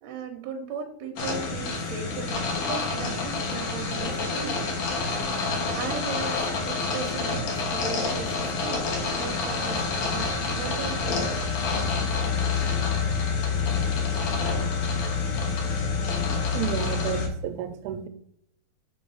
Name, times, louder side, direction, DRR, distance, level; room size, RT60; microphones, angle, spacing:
voice 1, 0.0-4.7 5.7-8.9 9.2-11.9, right 6 dB, 70° right, 3 dB, 1.7 m, -37 dB
sound 1, 1.2-17.3, left 4 dB, 65° left, 1.8 m, -27 dB
voice 2, 16.5-18.1, right 9 dB, 85° right, 9 dB, 2.4 m, -31 dB
5.3 x 3.9 x 5.5 m, 0.72 s
omnidirectional pair, 4.2 m